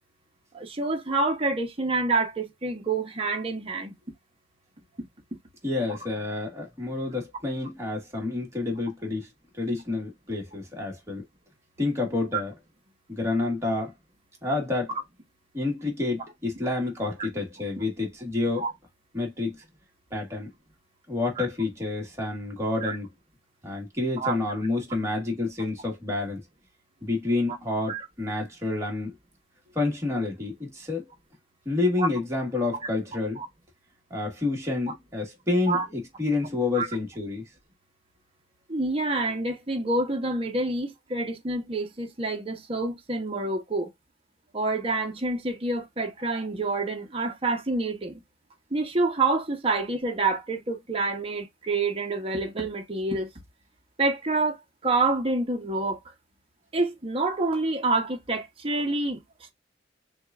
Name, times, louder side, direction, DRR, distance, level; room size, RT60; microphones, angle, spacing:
voice 1, 0.5-3.9 12.3-12.4 18.6-18.7 22.8-23.0 24.2-24.3 27.9-28.0 32.0-32.1 33.4-33.5 35.7-35.9 36.7-36.9 38.7-43.9 44.5-48.2 48.7-53.3 54.0-54.6 54.8-56.0 56.7-59.2, right 3 dB, 30° right, 1.0 m, -27 dB
voice 2, 5.6-9.3 9.6-11.2 11.8-12.5 13.1-13.9 14.4-14.9 15.5-18.6 19.1-19.6 20.1-20.5 21.1-23.1 23.6-26.4 27.0-29.1 29.7-31.0 31.6-33.4 34.1-37.4, left 3 dB, 15° right, 1.7 m, -29 dB
6.3 x 2.4 x 2.4 m
head